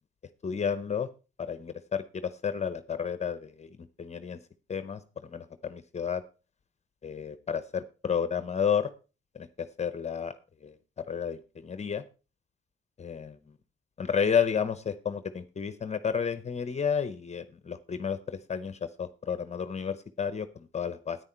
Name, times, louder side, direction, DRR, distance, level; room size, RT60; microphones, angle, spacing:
voice 1, 0.4-1.1 1.5-3.7 4.0-4.4 4.7-5.0 5.3-6.2 7.0-8.9 9.3-10.3 10.6-10.7 11.1-12.0 13.0-13.4 14.0-21.2, left 7 dB, 35° left, 13 dB, 0.8 m, -31 dB
9.7 x 9.5 x 4.4 m, 0.32 s
cardioid pair, 90°, 20 cm